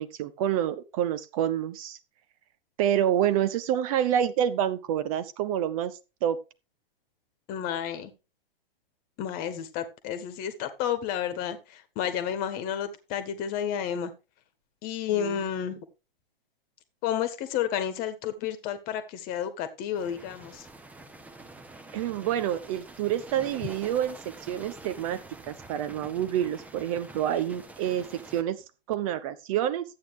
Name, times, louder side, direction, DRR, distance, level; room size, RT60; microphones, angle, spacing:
voice 1, 0.0-2.0 2.8-5.9 6.2-6.4 15.1-15.4 21.9-24.1 24.4-28.0 28.3-28.6 28.9-29.8, right 10 dB, 35° right, 0.8 m, -28 dB
voice 2, 7.5-8.1 9.2-14.1 14.8-15.8 17.0-20.7, left 9 dB, 30° left, 1.5 m, -31 dB
sound 1, 19.9-28.4, right 2 dB, 5° right, 0.9 m, -47 dB
12.5 x 8.6 x 3.3 m
figure-of-eight pair, 120°, 30 cm